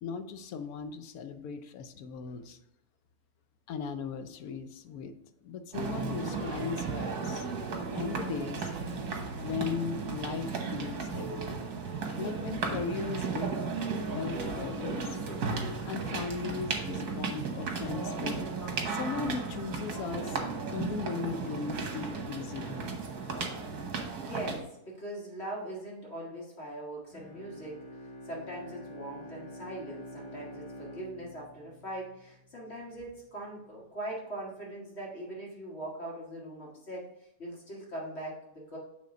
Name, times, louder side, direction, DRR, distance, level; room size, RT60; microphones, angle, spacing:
voice 1, 0.0-2.6 3.7-5.1 5.4-7.5 7.9-8.7 9.4-11.5 12.2-13.5 14.1-15.2 15.9-18.5 18.9-20.4 20.7-23.0, left 5 dB, 75° left, 9 dB, 1.1 m, -37 dB
sound 1, 5.7-24.6, right 4 dB, 85° right, 1.6 m, -35 dB
voice 2, 24.2-38.8, right 1 dB, 45° left, -4 dB, 2.2 m, -41 dB
Bowed string instrument, 27.1-32.6, equal, 5° right, 2.8 m, -47 dB
7.5 x 3.6 x 5.1 m, 0.82 s
omnidirectional pair, 1.6 m